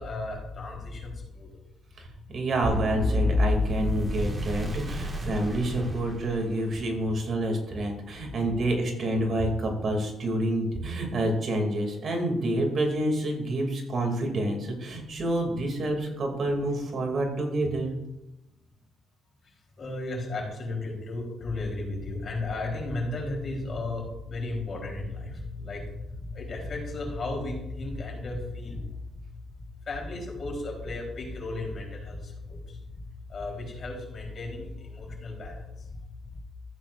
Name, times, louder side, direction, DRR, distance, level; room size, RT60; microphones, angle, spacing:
voice 1, 0.0-1.5 19.8-29.0 29.3-29.4 29.9-32.8 33.2-35.9, left 2 dB, 50° left, -1 dB, 3.9 m, -34 dB
voice 2, 2.0-17.9, right 1 dB, 55° right, 2 dB, 2.7 m, -28 dB
sound 1, 2.6-6.8, left 1 dB, 30° right, 1.9 m, -28 dB
14.0 x 9.0 x 2.6 m, 0.92 s
cardioid pair, 90°, 0 cm